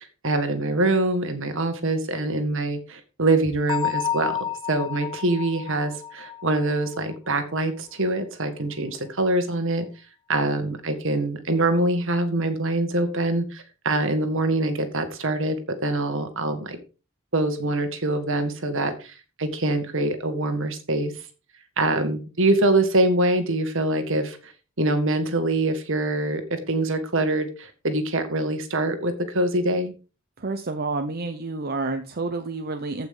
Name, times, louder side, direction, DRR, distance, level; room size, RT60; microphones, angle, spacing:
voice 1, 0.2-4.4 4.7-9.9 10.3-16.8 17.3-21.1 21.8-24.5 24.8-29.9, right 2 dB, 65° right, 8 dB, 1.9 m, -24 dB
Bell, 3.7-7.3, left 9 dB, 20° left, 0.5 m, -31 dB
voice 2, 30.4-33.1, right 3 dB, 45° right, 6 dB, 0.9 m, -29 dB
14.5 x 5.8 x 3.8 m, 0.33 s
head